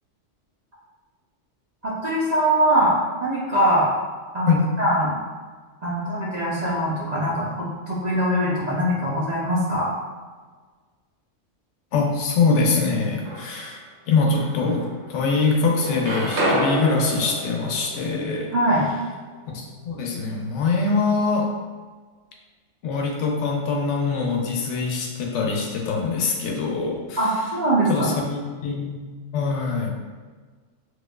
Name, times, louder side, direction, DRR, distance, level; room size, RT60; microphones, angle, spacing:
voice 1, 1.8-2.9 3.2-3.9 4.3-5.1 5.8-9.9 18.5-18.8 27.2-28.1, equal, 45° right, -7 dB, 0.6 m, -22 dB
voice 2, 11.9-13.8 14.1-14.8 15.1-18.5 19.5-21.5 22.8-27.2 27.9-29.9, left 4 dB, 75° left, 0 dB, 0.9 m, -23 dB
sound 1, 12.9-13.8 14.4-15.4 15.6-19.6, equal, 70° right, 1.0 m, -29 dB
4.4 x 2.3 x 2.3 m, 1.4 s
omnidirectional pair, 1.3 m